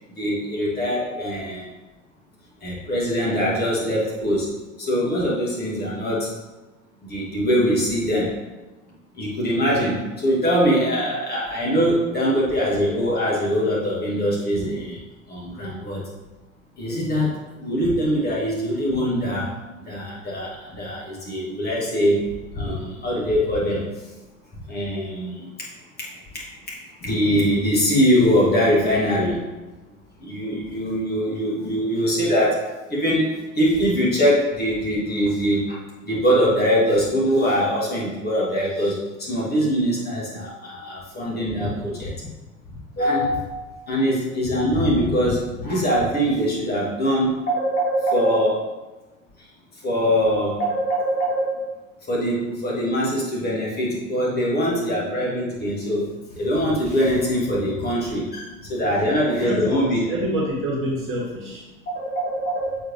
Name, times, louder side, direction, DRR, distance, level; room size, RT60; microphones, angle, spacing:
voice 1, 0.2-1.7 2.6-4.5 4.8-6.3 7.0-8.3 9.2-15.0 15.3-16.1 16.8-19.5 19.9-22.2 22.6-23.9 24.7-25.4 26.0-29.5 30.2-32.6 32.9-33.3 33.5-35.8 36.0-42.1 43.0-48.7 49.8-51.6 52.1-60.0 61.9-62.8, equal, 25° left, -6 dB, 2.0 m, -22 dB
voice 2, 59.4-61.7, equal, 30° right, -4 dB, 1.9 m, -27 dB
7.3 x 4.6 x 3.2 m, 1.1 s
figure-of-eight pair, 80°, 41 cm